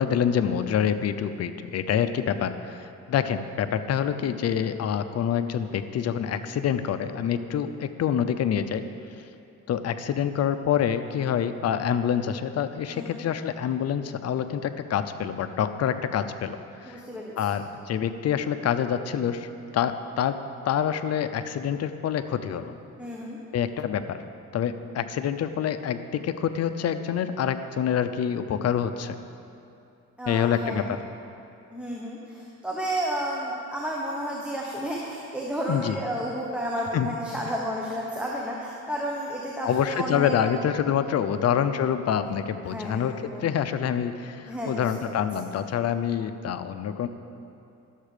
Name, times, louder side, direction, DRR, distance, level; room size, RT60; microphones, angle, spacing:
voice 1, 0.0-8.8 9.7-16.6 16.8-17.0 17.4-20.4 20.6-22.7 23.5-24.2 24.5-29.2 30.3-31.0 35.7-36.0 36.9-37.1 39.6-47.1, left 8 dB, 55° left, 10 dB, 0.6 m, -26 dB
voice 2, 12.9-13.3 16.8-17.5 23.0-23.4 30.2-31.0 31.7-40.5 42.6-43.5 44.5-45.1, equal, 5° right, -3 dB, 1.2 m, -32 dB
12.0 x 7.4 x 5.0 m, 2.7 s
cardioid pair, 90°, 30 cm